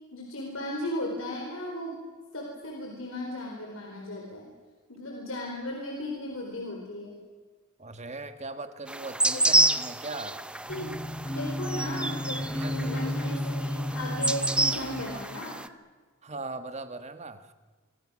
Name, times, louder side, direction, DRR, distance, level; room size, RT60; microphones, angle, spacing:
voice 1, 0.1-2.0 2.3-4.5 4.9-7.2 9.3-9.4 10.7-15.6, left 1 dB, 85° left, 0 dB, 4.4 m, -36 dB
voice 2, 7.8-10.4 12.4-13.1 16.2-17.5, right 3 dB, 35° right, 9 dB, 1.6 m, -39 dB
sound 1, 8.9-15.7, right 2 dB, 5° right, 0.7 m, -29 dB
sound 2, 10.7-15.2, left 1 dB, 15° left, 3.1 m, -33 dB
26.5 x 24.0 x 6.3 m, 1.4 s
head